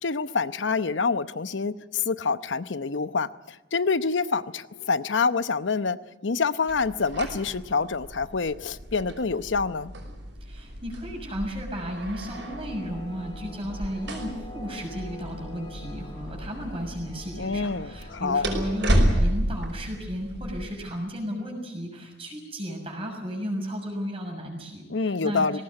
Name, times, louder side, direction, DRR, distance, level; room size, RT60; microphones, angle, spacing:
voice 1, 0.0-6.0 6.2-9.9 17.4-18.4 24.9-25.6, left 4 dB, 80° left, 13 dB, 0.8 m, -27 dB
sound 1, 6.7-20.6, equal, 70° right, 5.6 m, -31 dB
voice 2, 10.4-25.6, equal, 30° right, 1 dB, 6.5 m, -34 dB
sound 2, 12.3-19.0, left 1 dB, 30° left, 2.1 m, -46 dB
20.5 x 18.5 x 9.7 m, 1.0 s
head